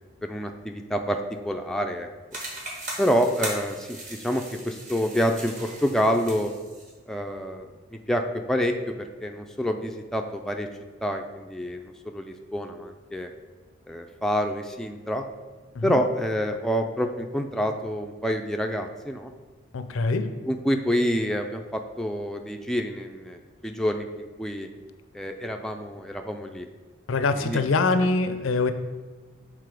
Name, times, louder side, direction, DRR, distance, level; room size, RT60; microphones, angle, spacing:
voice 1, 0.2-2.1 3.0-3.9 4.2-6.5 7.1-8.2 8.5-10.7 11.0-13.3 13.9-15.2 15.8-19.3 20.5-23.4 23.6-24.7 25.1-26.7 27.4-27.6, equal, 5° left, 3 dB, 0.3 m, -27 dB
sound 1, 2.3-6.9, right 2 dB, 40° right, 1.2 m, -38 dB
voice 2, 19.7-20.3 27.1-28.7, left 3 dB, 75° left, 9 dB, 0.5 m, -24 dB
6.8 x 3.6 x 4.8 m, 1.3 s
head